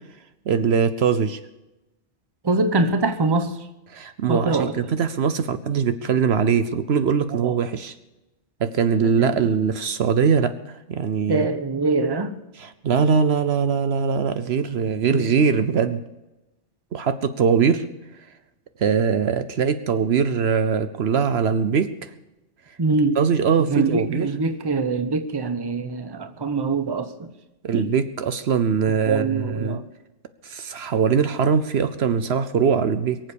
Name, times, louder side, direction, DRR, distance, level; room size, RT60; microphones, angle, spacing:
voice 1, 0.5-1.4 3.9-7.9 8.6-11.5 12.6-16.0 16.9-17.8 18.8-22.1 23.2-24.3 27.6-29.8 30.4-33.2, right 6 dB, 65° right, 1.0 m, -21 dB
voice 2, 2.4-3.6 4.3-4.7 7.3-7.5 9.2-9.3 11.3-12.4 15.1-15.3 22.8-23.2 23.7-27.3 27.7-27.9 29.1-29.8, right 3 dB, 25° right, 0.8 m, -23 dB
23.0 x 7.6 x 6.9 m
omnidirectional pair, 1.2 m